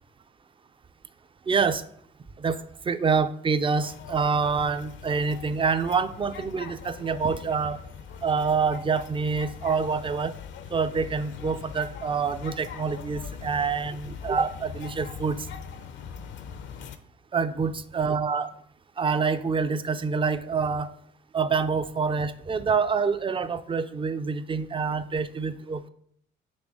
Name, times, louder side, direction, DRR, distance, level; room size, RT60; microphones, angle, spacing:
voice 1, 1.5-1.8 2.4-7.8 8.2-10.3 10.7-15.5 17.3-18.5 19.0-20.9 21.3-25.9, right 5 dB, 25° right, 12 dB, 0.4 m, -26 dB
sound 1, 3.8-17.0, left 7 dB, 70° left, 0.6 m, -41 dB
6.2 x 3.3 x 4.9 m, 0.65 s
cardioid pair, 90°, 20 cm